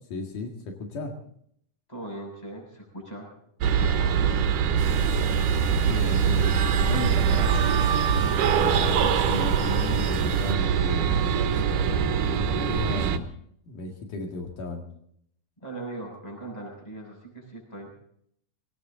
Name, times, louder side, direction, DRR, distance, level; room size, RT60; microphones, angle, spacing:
voice 1, 0.1-1.1 5.8-7.7 8.6-11.8 12.2-13.3 13.7-14.8, left 2 dB, 80° left, 2 dB, 3.5 m, -34 dB
voice 2, 1.9-3.3 3.7-4.3 15.6-17.9, right 2 dB, 10° left, 0 dB, 6.7 m, -39 dB
sound 1, 3.6-13.2, right 7 dB, 90° right, 2.7 m, -23 dB
sound 2, 4.8-10.5, right 4 dB, 40° right, 3.8 m, -31 dB
20.5 x 18.5 x 3.8 m, 0.68 s
omnidirectional pair, 3.6 m